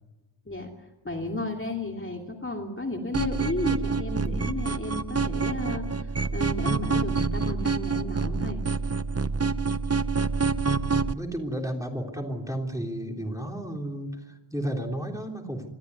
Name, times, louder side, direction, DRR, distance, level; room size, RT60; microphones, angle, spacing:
voice 1, 1.0-8.6, left 2 dB, 25° left, 1 dB, 2.7 m, -33 dB
sound 1, 3.1-11.1, right 4 dB, 30° right, 0.7 m, -27 dB
voice 2, 10.9-15.7, right 1 dB, 5° right, 1 dB, 3.5 m, -33 dB
26.5 x 13.0 x 9.6 m, 1.1 s
wide cardioid pair, 90°, 49 cm